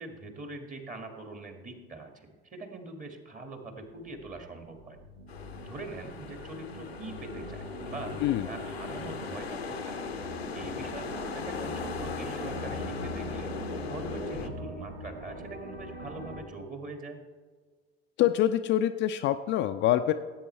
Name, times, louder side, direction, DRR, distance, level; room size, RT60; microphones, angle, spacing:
voice 1, 0.0-5.0 5.6-10.0 10.5-17.2, right 3 dB, 25° right, 5 dB, 1.9 m, -43 dB
sound 1, 4.0-16.4, equal, 80° right, 1.1 m, -43 dB
sound 2, 5.3-14.5, left 5 dB, 85° left, 0.8 m, -38 dB
voice 2, 18.2-20.1, left 12 dB, 40° left, 9 dB, 0.4 m, -25 dB
16.0 x 8.5 x 3.2 m, 1.5 s
figure-of-eight pair, 60°, 31 cm